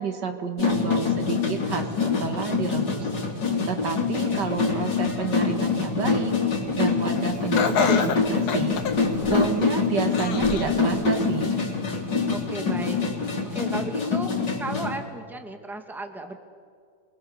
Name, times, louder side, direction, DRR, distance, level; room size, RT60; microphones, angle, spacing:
voice 1, 0.0-3.1 3.7-6.3 6.7-8.8 9.3-11.5, right 6 dB, 80° right, 6 dB, 2.3 m, -30 dB
sound 1, 0.6-15.0, left 4 dB, 90° left, 3.9 m, -25 dB
Laughter, 7.5-9.7 10.1-10.8 11.3-11.4 12.3-12.4, left 5 dB, 65° left, 1.6 m, -27 dB
voice 2, 12.3-16.4, right 2 dB, ahead, 5 dB, 1.7 m, -35 dB
26.5 x 22.0 x 7.2 m, 2.2 s
omnidirectional pair, 1.8 m